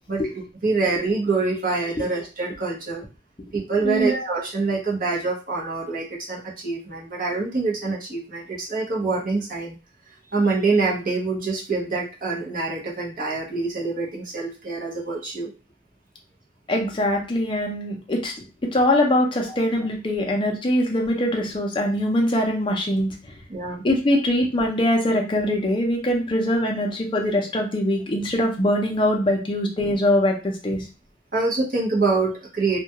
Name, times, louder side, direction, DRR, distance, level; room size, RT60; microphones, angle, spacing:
voice 1, 0.1-3.1 3.5-9.8 10.3-15.5 19.5-19.6 23.5-23.8 31.3-32.8, right 3 dB, 45° right, -3 dB, 0.8 m, -25 dB
voice 2, 16.7-18.3 18.6-23.1 23.8-30.8, left 1 dB, 25° left, 1 dB, 0.5 m, -22 dB
2.3 x 2.2 x 2.8 m, 0.32 s
head